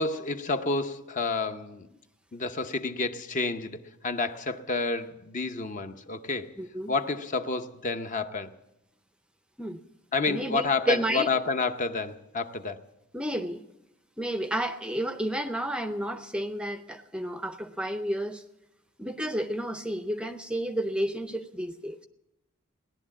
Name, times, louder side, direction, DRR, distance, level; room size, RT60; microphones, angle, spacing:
voice 1, 0.0-1.9 2.3-6.6 6.9-8.6 10.1-12.8, left 3 dB, 40° left, 0.7 m, -29 dB
voice 2, 6.6-6.9 9.6-9.8 10.3-11.3 13.1-13.6 14.2-18.4 19.0-22.1, right 1 dB, 5° right, 0.5 m, -31 dB
18.0 x 11.0 x 7.3 m
head